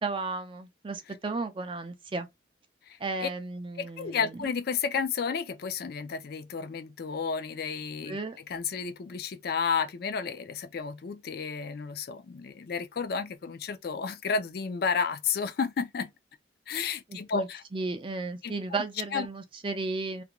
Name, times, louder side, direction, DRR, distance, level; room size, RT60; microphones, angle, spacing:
voice 1, 0.0-2.3 3.0-4.5 8.1-8.4 17.1-20.2, right 3 dB, 25° right, 0.4 m, -34 dB
voice 2, 2.9-3.3 3.8-8.2 8.5-16.1 16.7-17.6 18.4-18.5 19.1-19.3, left 5 dB, 55° left, 0.4 m, -32 dB
2.4 x 2.2 x 2.9 m
head